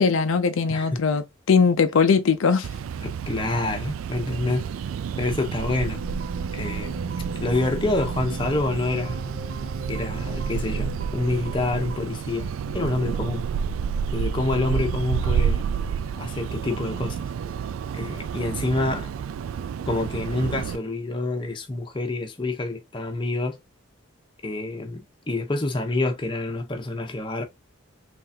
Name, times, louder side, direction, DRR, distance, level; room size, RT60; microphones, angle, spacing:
voice 1, 0.0-2.7, left 5 dB, 75° left, 0.5 m, -20 dB
voice 2, 0.7-1.0 3.0-4.7 5.2-6.0 6.5-7.0 7.4-9.2 9.9-13.5 14.1-15.6 16.2-17.2 18.0-19.1 19.9-23.6 24.4-27.4, left 2 dB, 25° left, 0.8 m, -27 dB
sound 1, 2.6-20.8, right 7 dB, 80° right, 0.3 m, -30 dB
sound 2, 5.8-12.0, right 3 dB, 65° right, 0.8 m, -36 dB
3.8 x 3.3 x 2.7 m
head